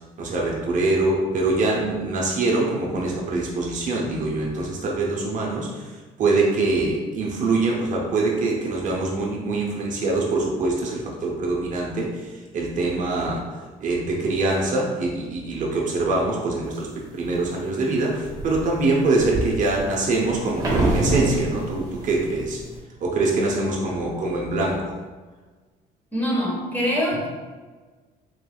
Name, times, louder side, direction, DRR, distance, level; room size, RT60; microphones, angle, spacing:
voice 1, 0.2-13.4 13.8-16.9 17.1-22.6 23.0-24.9, right 2 dB, 50° right, -2 dB, 0.6 m, -24 dB
sound 1, 16.7-17.5 18.0-22.8, right 2 dB, 20° right, 1.0 m, -27 dB
voice 2, 26.1-27.3, equal, 10° left, -4 dB, 1.1 m, -24 dB
3.9 x 3.2 x 2.2 m, 1.4 s
cardioid pair, 110°, 17 cm